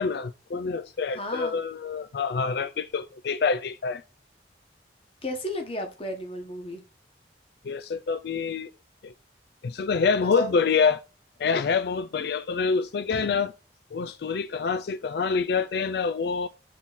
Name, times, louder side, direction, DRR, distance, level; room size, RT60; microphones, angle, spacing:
voice 1, 0.0-4.0 7.6-8.7 9.0-9.1 9.6-11.0 11.4-13.5 13.9-16.5, left 5 dB, 60° left, 0.4 m, -26 dB
voice 2, 1.1-1.6 5.2-6.8 10.3-10.5, equal, 30° left, 1.2 m, -33 dB
7.4 x 3.6 x 4.1 m
head